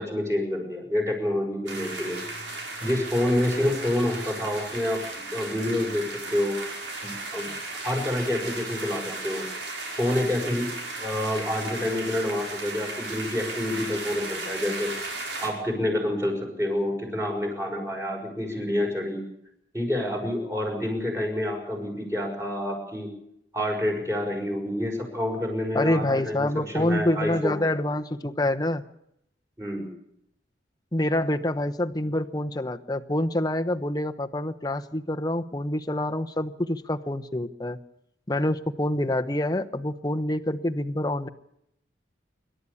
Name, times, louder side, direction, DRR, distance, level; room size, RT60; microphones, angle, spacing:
voice 1, 0.0-2.2 2.8-5.0 5.3-6.6 7.0-7.5 7.8-9.5 10.0-10.7 11.0-14.9 15.4-19.2 19.7-23.1 23.5-27.6 29.6-29.9, left 1 dB, 15° right, 1 dB, 6.0 m, -28 dB
sound 1, 1.7-15.5, right 2 dB, 85° right, 6.3 m, -35 dB
voice 2, 25.7-28.8 30.9-37.8 38.3-41.3, left 1 dB, 20° left, 8 dB, 1.0 m, -26 dB
27.0 x 12.5 x 8.5 m, 0.77 s
head